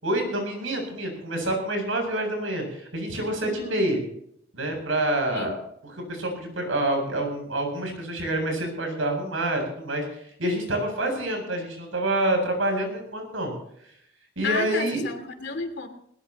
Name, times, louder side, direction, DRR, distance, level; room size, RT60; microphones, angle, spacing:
voice 1, 0.0-4.0 4.5-5.5 5.8-10.1 10.4-13.5 14.4-15.1, right 1 dB, 85° right, 3 dB, 7.8 m, -27 dB
voice 2, 3.4-3.8 5.3-5.5 14.4-15.9, left 5 dB, 60° left, 6 dB, 2.7 m, -32 dB
20.0 x 20.0 x 3.0 m, 0.69 s
head